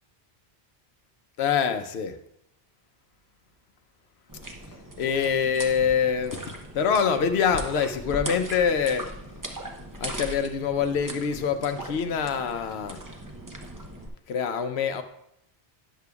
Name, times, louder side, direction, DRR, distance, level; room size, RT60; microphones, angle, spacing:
voice 1, 1.4-2.2 5.0-6.4 6.7-9.1 10.0-13.0 14.3-15.0, left 7 dB, 90° left, 9 dB, 0.9 m, -25 dB
sound 1, 4.3-14.1, right 1 dB, 20° right, 0.7 m, -39 dB
10.0 x 6.7 x 2.3 m, 0.78 s
omnidirectional pair, 1.0 m